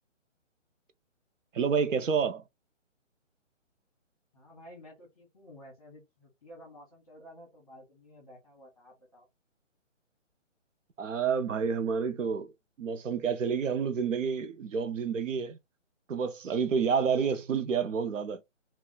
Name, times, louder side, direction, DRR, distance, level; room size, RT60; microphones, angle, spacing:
voice 1, 1.5-2.4 11.0-12.5 12.8-15.6 16.1-18.4, right 6 dB, 85° right, 0.6 m, -29 dB
voice 2, 4.3-9.3 17.8-17.9, equal, 30° left, 1.0 m, -52 dB
2.3 x 2.3 x 3.8 m
hypercardioid pair, 175°, 37 cm